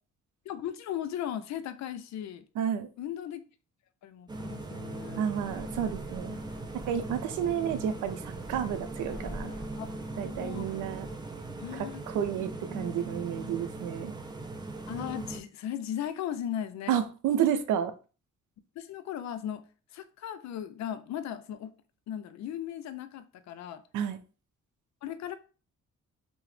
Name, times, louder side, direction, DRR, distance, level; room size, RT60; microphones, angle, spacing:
voice 1, 0.5-2.4 3.0-3.4 4.0-5.3 7.4-7.5 9.8-9.9 10.2-10.7 11.6-12.0 12.7-12.8 14.9-16.9 18.8-19.6 19.9-21.7 22.1-23.8 25.0-25.3, left 10 dB, 65° left, 11 dB, 0.4 m, -37 dB
voice 2, 2.6-2.9 5.2-6.4 6.7-9.5 10.2-11.1 11.7-14.1 16.9-17.9 23.9-24.2, right 9 dB, 80° right, 10 dB, 0.5 m, -31 dB
sound 1, 4.3-15.4, right 2 dB, 15° right, 0.4 m, -40 dB
sound 2, 5.3-11.2, equal, 15° left, 1.0 m, -47 dB
2.8 x 2.0 x 3.1 m, 0.35 s
cardioid pair, 90°, 30 cm